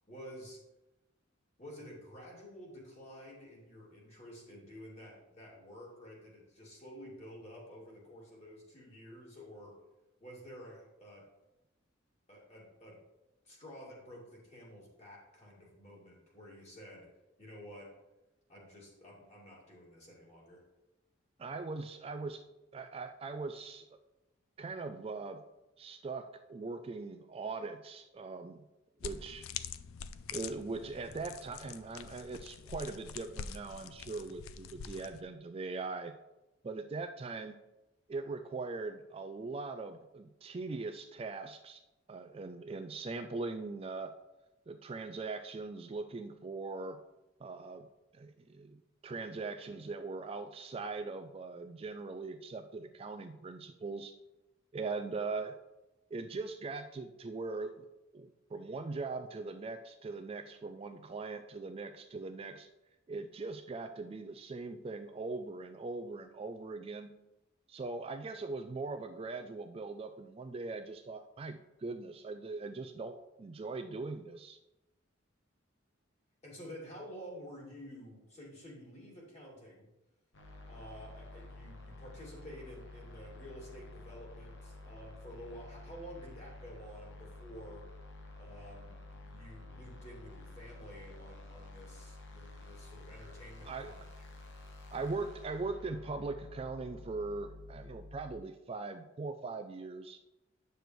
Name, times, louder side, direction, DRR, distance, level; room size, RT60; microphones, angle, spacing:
voice 1, 0.1-0.6 1.6-9.7 10.2-11.2 12.3-13.0 13.4-17.1 17.4-17.9 18.5-20.6 76.4-79.9 80.7-87.8 88.3-94.3, equal, 35° left, -4 dB, 2.4 m, -50 dB
voice 2, 21.4-22.4 22.7-23.9 24.6-25.4 25.8-28.7 29.0-29.5 30.3-36.1 36.6-37.6 38.1-41.8 42.1-44.1 44.7-47.0 47.4-47.9 48.1-54.1 54.7-55.6 56.1-57.9 58.1-62.7 63.1-67.1 67.7-74.6 93.7-93.9 94.9-100.2, right 3 dB, 30° right, 7 dB, 0.3 m, -41 dB
sound 1, 29.0-35.2, left 7 dB, 85° left, 0.4 m, -45 dB
sound 2, 80.3-98.3, left 2 dB, 60° left, 1.0 m, -50 dB
9.0 x 6.7 x 3.1 m, 0.98 s
head